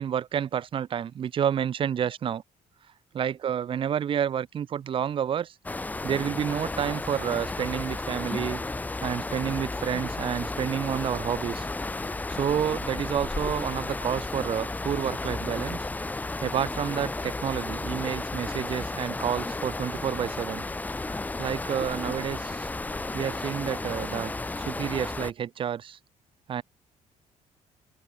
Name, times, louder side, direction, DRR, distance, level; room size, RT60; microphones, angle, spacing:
voice 1, 0.0-2.4 3.1-5.5 6.0-8.6 9.0-11.7 12.3-15.8 16.4-20.6 21.4-22.7 23.1-24.3 24.6-26.0 26.5-26.6, right 9 dB, 45° right, 1.6 m, -29 dB
sound 1, 5.6-25.3, left 2 dB, 10° left, 5.5 m, -33 dB
open air
cardioid pair, 145°, 13 cm